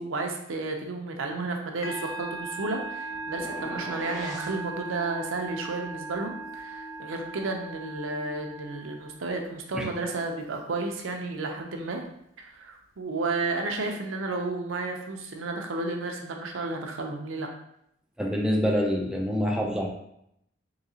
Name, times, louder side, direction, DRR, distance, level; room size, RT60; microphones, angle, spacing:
voice 1, 0.0-12.0 12.4-17.5, right 3 dB, 85° right, 2 dB, 0.6 m, -32 dB
Musical instrument, 1.8-9.5, right 3 dB, 80° left, 0.6 m, -38 dB
sound 1, 3.3-4.6, left 1 dB, 40° left, 1.2 m, -39 dB
voice 2, 18.2-19.9, equal, 5° right, 0 dB, 0.3 m, -26 dB
3.8 x 2.8 x 2.7 m, 0.75 s
head